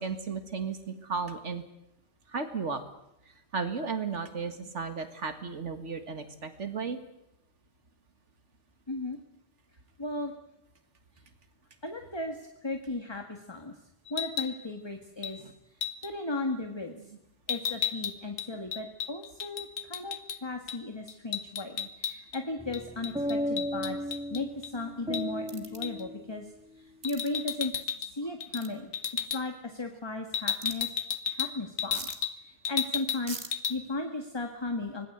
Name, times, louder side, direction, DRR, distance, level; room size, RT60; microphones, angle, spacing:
voice 1, 0.0-1.6 2.3-2.8 3.5-7.0 15.4-15.5 21.8-21.9, right 5 dB, 80° right, 8 dB, 2.1 m, -34 dB
voice 2, 8.9-9.2 10.0-10.3 11.1-11.2 11.8-13.8 14.1-15.5 16.0-17.1 17.5-20.2 20.4-28.9 29.3-30.9 31.3-35.1, left 2 dB, 20° left, 4 dB, 1.8 m, -36 dB
sound 1, 14.1-14.6 15.2-15.4 15.8-16.1 17.5-20.4 20.7-20.8 21.1-22.4 22.7-24.7 25.1-25.3 25.8-26.0 27.0-28.1 28.4-28.7 28.9-29.4 30.3-32.4 32.6-33.2 33.5-33.8, left 7 dB, 80° left, 1.4 m, -33 dB
sound 2, 22.6-27.0, equal, 5° right, 1.3 m, -36 dB
sound 3, 25.5-25.8 27.0-27.3 28.6-28.7 30.6-30.8 31.9-32.2 33.3-33.5, right 4 dB, 55° right, 2.2 m, -41 dB
25.0 x 19.5 x 8.0 m, 0.84 s
omnidirectional pair, 1.2 m